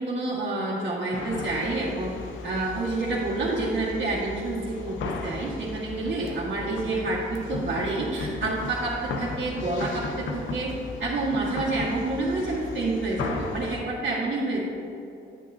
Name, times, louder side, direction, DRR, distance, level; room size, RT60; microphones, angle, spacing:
voice 1, 0.0-2.1 2.4-10.7 11.0-14.7, right 2 dB, 55° right, -8 dB, 1.9 m, -28 dB
sound 1, 1.1-13.8, left 3 dB, 75° left, 0.8 m, -36 dB
9.4 x 9.0 x 2.8 m, 2.7 s
cardioid pair, 90°, 20 cm